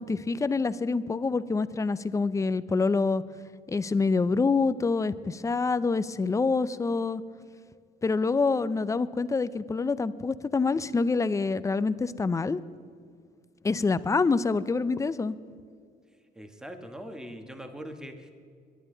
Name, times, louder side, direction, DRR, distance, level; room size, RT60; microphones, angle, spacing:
voice 1, 0.0-3.2 3.7-7.2 8.0-12.6 13.6-15.4, left 4 dB, 20° left, 15 dB, 0.5 m, -26 dB
voice 2, 16.3-18.3, equal, 5° right, 5 dB, 1.4 m, -41 dB
21.5 x 11.5 x 3.9 m, 2.2 s
cardioid pair, 110°, 17 cm